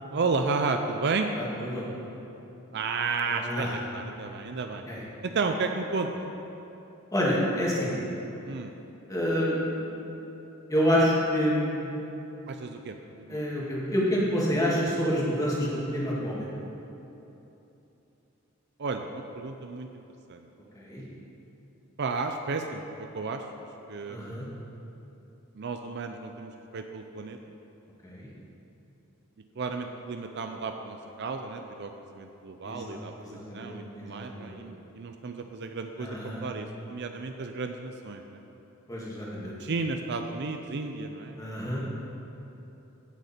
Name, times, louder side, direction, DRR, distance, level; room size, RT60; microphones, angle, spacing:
voice 1, 0.1-1.3 2.7-4.8 5.2-6.1 8.4-8.7 12.5-13.4 18.8-20.0 20.3-20.4 22.0-24.4 25.6-27.4 29.6-38.4 39.6-41.7, right 4 dB, 55° right, 5 dB, 0.5 m, -33 dB
voice 2, 1.3-1.9 3.3-3.7 4.9-5.0 7.1-8.0 9.1-9.8 10.7-12.0 13.3-16.5 20.7-21.0 24.1-24.4 28.0-28.3 32.6-34.6 36.0-36.4 38.9-39.5 41.4-41.8, equal, 15° left, -5 dB, 2.0 m, -28 dB
16.0 x 6.6 x 4.3 m, 3.0 s
head